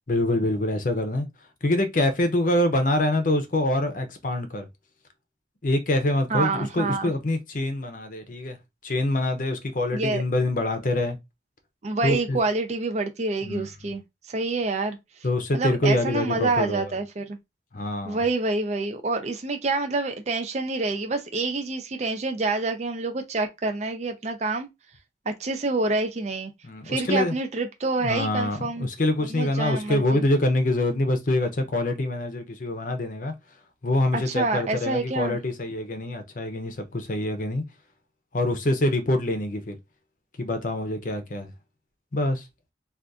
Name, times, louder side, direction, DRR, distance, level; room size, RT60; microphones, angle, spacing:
voice 1, 0.1-1.3 1.6-4.7 5.6-8.6 8.8-11.2 12.0-12.4 13.4-13.7 15.2-16.9 17.7-18.2 26.6-27.3 28.0-33.3 33.8-37.6 38.3-39.8 40.4-41.5 42.1-42.4, left 1 dB, 45° left, 0.6 m, -25 dB
voice 2, 6.3-7.1 9.9-10.2 11.8-14.0 14.3-15.0 15.5-17.4 18.0-24.7 25.3-26.5 26.8-28.9 29.3-30.2 34.1-35.4, right 3 dB, 40° right, 0.5 m, -27 dB
2.6 x 2.4 x 3.5 m
head